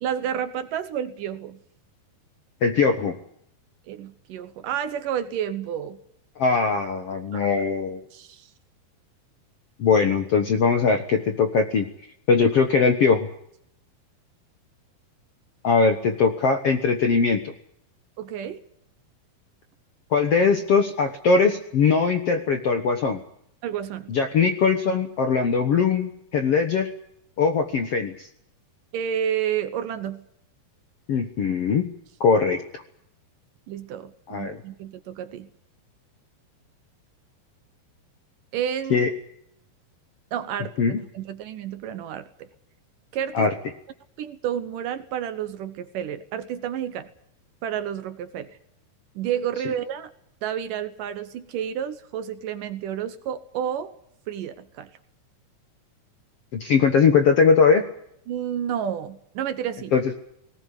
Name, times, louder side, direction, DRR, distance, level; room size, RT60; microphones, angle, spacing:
voice 1, 0.0-1.6 3.9-6.0 7.3-7.5 8.1-8.5 18.2-18.6 23.6-24.1 28.9-30.2 33.7-35.5 38.5-39.1 40.3-40.7 41.1-42.5 43.1-43.5 44.2-47.1 47.6-48.6 49.2-50.1 50.4-53.9 54.3-54.9 58.3-59.9, right 9 dB, 70° right, 11 dB, 2.4 m, -30 dB
voice 2, 2.6-3.1 6.4-8.0 9.8-11.9 12.3-13.3 15.6-17.5 20.1-23.2 24.1-26.9 27.4-28.3 31.1-31.9 32.2-32.6 34.3-34.6 38.9-39.1 40.8-40.9 43.3-43.5 56.5-57.8 59.9-60.2, left 5 dB, 60° left, 6 dB, 1.6 m, -20 dB
19.0 x 19.0 x 9.8 m, 0.72 s
omnidirectional pair, 4.5 m